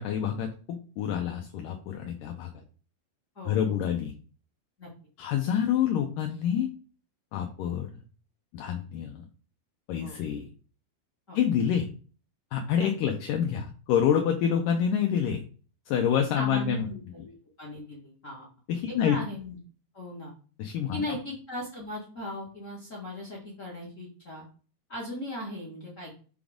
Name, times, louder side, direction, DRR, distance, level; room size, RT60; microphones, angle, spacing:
voice 1, 0.0-2.6 3.5-4.1 5.2-6.7 7.3-8.0 8.5-9.3 9.9-10.5 11.3-11.9 12.5-15.4 15.9-16.9 18.7-19.2 20.6-21.2, left 8 dB, 75° left, 4 dB, 2.1 m, -27 dB
voice 2, 3.3-3.8 4.8-4.9 10.0-10.2 11.3-11.4 12.8-13.1 16.3-17.3 17.6-18.5 18.9-19.6 19.9-20.3 20.9-24.4 24.9-26.2, left 1 dB, 35° left, -4 dB, 1.2 m, -38 dB
7.0 x 3.8 x 5.0 m, 0.39 s
omnidirectional pair, 4.4 m